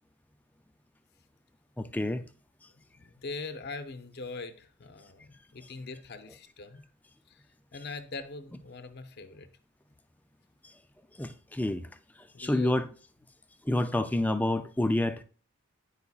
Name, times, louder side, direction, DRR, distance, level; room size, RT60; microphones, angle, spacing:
voice 1, 1.8-2.3 11.2-11.9 12.4-12.9 13.6-15.2, left 1 dB, 5° left, 0.3 m, -28 dB
voice 2, 2.7-6.9 7.3-7.4 7.7-9.5 12.3-12.7, left 3 dB, 45° left, 0.6 m, -42 dB
9.7 x 4.9 x 2.3 m
head